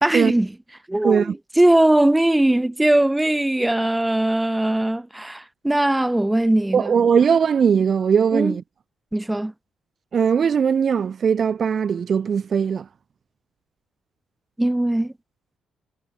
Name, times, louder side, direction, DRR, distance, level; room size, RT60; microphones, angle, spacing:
voice 1, 0.0-0.5 0.9-6.9 8.3-8.6 9.1-9.5 14.6-15.1, right 1 dB, 10° right, 0.7 m, -20 dB
voice 2, 1.0-1.3 6.7-8.6 10.1-12.9, right 7 dB, 50° right, 0.3 m, -19 dB
cardioid pair, 90°, 0 cm